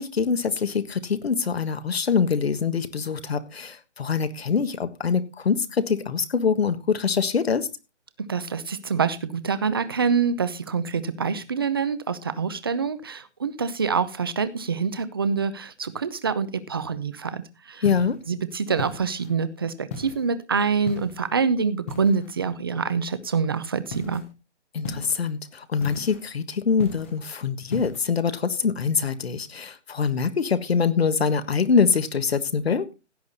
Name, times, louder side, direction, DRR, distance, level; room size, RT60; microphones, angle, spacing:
voice 1, 0.0-7.7 17.8-18.2 24.7-32.9, left 6 dB, 60° left, 1.5 m, -24 dB
voice 2, 8.3-17.4 17.7-17.8 18.3-24.2, right 5 dB, 20° right, 0.7 m, -26 dB
sound 1, 17.8-18.2 18.8-19.4 19.9-20.3 20.9-21.3 21.9-22.4 23.9-24.3 24.8-25.3 25.8-26.3 26.8-27.2 27.7-28.1, left 4 dB, 10° left, 0.8 m, -36 dB
16.0 x 8.1 x 4.1 m
hypercardioid pair, 165°, 35 cm